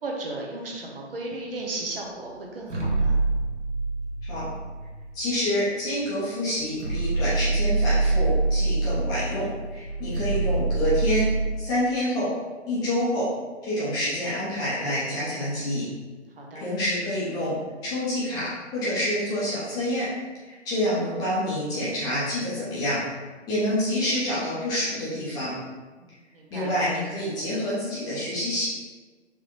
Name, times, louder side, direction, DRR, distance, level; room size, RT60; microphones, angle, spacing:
voice 1, 0.0-3.2 16.4-16.7 26.0-26.8, right 2 dB, 50° right, -1 dB, 1.0 m, -35 dB
sound 1, 2.6-5.3 6.1-6.2 6.5-11.4, right 3 dB, 80° right, 1.1 m, -25 dB
voice 2, 5.1-11.3 11.6-12.3 12.7-13.3 13.6-15.8 16.5-17.6 17.8-20.1 20.4-23.0 23.5-25.5 26.5-28.7, left 1 dB, 10° left, -10 dB, 0.8 m, -27 dB
4.8 x 3.3 x 3.0 m, 1.3 s
figure-of-eight pair, 135°, 35 cm